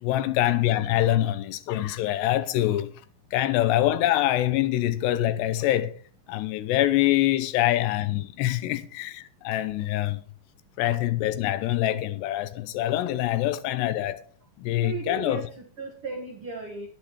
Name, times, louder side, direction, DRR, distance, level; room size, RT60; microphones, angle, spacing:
voice 1, 0.0-2.9 3.3-6.0 6.3-10.2 10.8-14.3 14.6-15.4, left 14 dB, 80° left, 2.6 m, -25 dB
voice 2, 14.8-16.9, right 3 dB, 90° right, 1.2 m, -36 dB
19.5 x 7.6 x 3.1 m
omnidirectional pair, 5.3 m